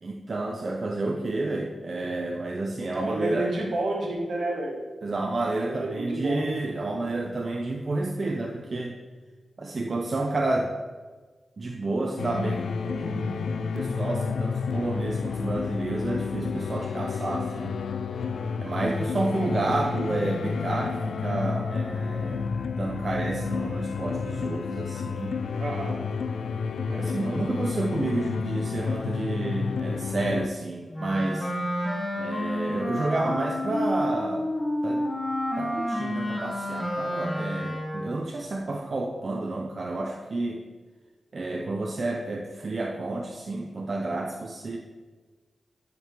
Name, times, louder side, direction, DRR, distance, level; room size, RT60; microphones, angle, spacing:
voice 1, 0.0-3.5 5.0-9.0 9.6-10.7 11.6-17.8 18.6-22.5 22.8-25.4 26.9-31.5 32.2-34.5 34.8-35.1 35.6-40.6 41.3-44.8, right 2 dB, 55° right, 0 dB, 0.6 m, -30 dB
voice 2, 2.9-4.8 5.6-6.8 25.6-26.0 26.8-27.1, right 2 dB, 80° right, -1 dB, 1.6 m, -30 dB
sound 1, 12.2-30.5, left 5 dB, 85° left, 0.3 m, -30 dB
Wind instrument woodwind instrument, 30.9-38.2, left 1 dB, 25° left, 2.0 m, -30 dB
10.5 x 5.2 x 3.0 m, 1.4 s
cardioid pair, 55°, 0 cm